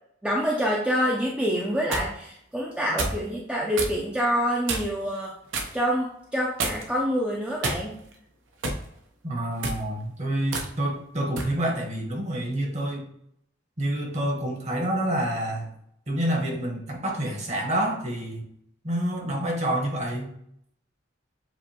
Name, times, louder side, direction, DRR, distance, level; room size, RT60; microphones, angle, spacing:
voice 1, 0.2-5.4 5.7-7.9, equal, 5° right, -3 dB, 0.5 m, -26 dB
sound 1, 1.5-2.1 3.0-3.2 3.7-4.0 4.7-5.0 5.5-5.8 6.6-7.0 7.6-8.1 8.6-8.9 9.5-9.8 10.5-10.7 11.4-11.6, right 3 dB, 65° right, 0.7 m, -29 dB
voice 2, 9.2-13.0 13.8-15.7 16.1-18.4 18.8-20.3, right 1 dB, 35° right, 0 dB, 1.1 m, -28 dB
7.4 x 2.5 x 2.8 m, 0.72 s
head